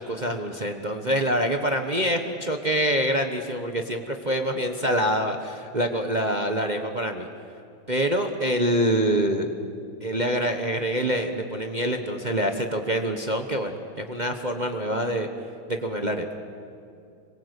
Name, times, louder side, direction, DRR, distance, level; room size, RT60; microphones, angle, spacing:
voice 1, 0.0-7.3 7.9-9.5 10.0-15.3 15.7-16.3, equal, 25° right, 5 dB, 1.0 m, -25 dB
26.5 x 22.5 x 8.2 m, 2.6 s
omnidirectional pair, 2.2 m